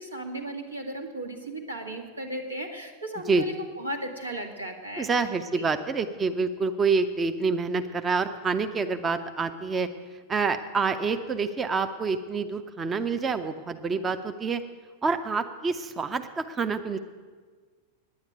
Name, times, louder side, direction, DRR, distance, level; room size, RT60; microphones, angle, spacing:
voice 1, 0.0-5.1 5.6-5.8, right 1 dB, 85° right, 2 dB, 1.6 m, -35 dB
voice 2, 5.0-9.9 10.3-14.6 15.0-17.0, right 4 dB, 20° right, 9 dB, 0.6 m, -27 dB
9.7 x 9.5 x 9.2 m, 1.5 s
figure-of-eight pair, 90°, 0 cm